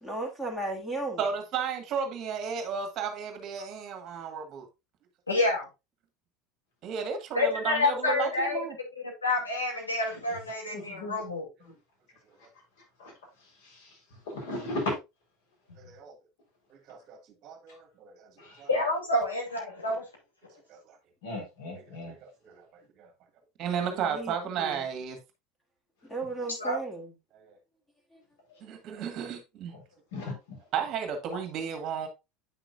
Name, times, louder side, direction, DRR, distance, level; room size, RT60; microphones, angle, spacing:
voice 1, 0.0-1.2 23.8-24.8 26.0-27.1, right 2 dB, 5° left, 2.0 m, -35 dB
voice 2, 1.2-4.7 6.8-8.8 15.8-16.1 16.7-18.3 18.6-18.7 20.7-21.0 21.7-23.1 23.6-25.2 27.3-27.6 28.6-29.7 30.7-32.1, right 7 dB, 45° right, 1.9 m, -34 dB
voice 3, 5.3-5.7 7.3-8.6 9.0-11.5 18.7-20.0 26.6-26.8, left 2 dB, 85° left, 2.5 m, -28 dB
voice 4, 10.7-11.2 11.6-11.7 13.0-13.1 14.3-14.9 18.4-18.5 21.2-22.1 30.1-30.6, left 2 dB, 65° left, 4.3 m, -35 dB
8.8 x 5.9 x 2.5 m
figure-of-eight pair, 75°, 0 cm